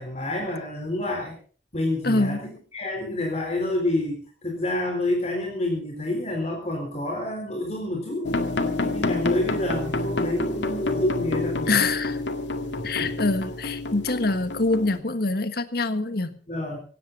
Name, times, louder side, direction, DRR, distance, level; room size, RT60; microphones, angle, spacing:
voice 1, 0.0-1.3 1.7-8.3 8.8-11.8 12.8-13.1 16.5-16.8, left 1 dB, 35° left, 2 dB, 3.9 m, -28 dB
voice 2, 2.0-2.4 11.7-12.2 12.8-16.3, left 3 dB, 60° left, 11 dB, 1.5 m, -25 dB
sound 1, 8.2-15.0, left 2 dB, 85° left, 2.0 m, -28 dB
17.0 x 16.5 x 4.0 m, 0.40 s
head